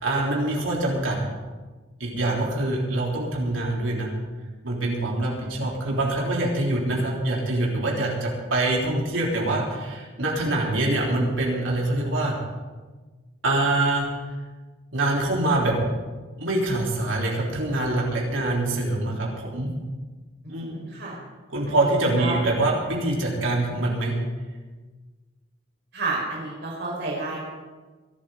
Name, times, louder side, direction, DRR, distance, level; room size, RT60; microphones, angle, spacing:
voice 1, 0.0-1.2 2.0-4.1 4.6-12.4 13.4-14.1 14.9-15.8 16.4-19.7 20.5-20.8 21.5-24.2, right 2 dB, 90° right, -2 dB, 3.7 m, -24 dB
voice 2, 20.4-21.2 21.7-22.4 25.9-27.4, right 3 dB, 60° right, -4 dB, 4.9 m, -31 dB
22.5 x 12.5 x 3.9 m, 1.3 s
head